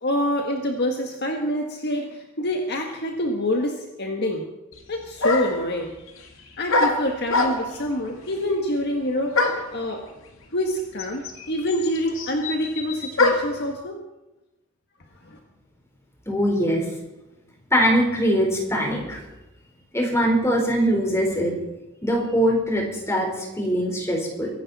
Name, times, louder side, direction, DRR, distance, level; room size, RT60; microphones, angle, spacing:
voice 1, 0.0-4.4 4.9-5.9 6.6-10.0 10.5-14.0 15.2-15.4, left 1 dB, 55° left, 2 dB, 1.6 m, -26 dB
sound 1, 4.7-4.8 5.2-5.7 6.7-7.9 9.3-9.8 10.7-10.8 11.0-13.6, left 2 dB, 70° left, 2.0 m, -23 dB
voice 2, 16.3-16.8 17.7-19.2 19.9-21.5 22.0-24.5, equal, 15° left, 0 dB, 4.1 m, -22 dB
23.5 x 11.0 x 4.2 m, 0.97 s
head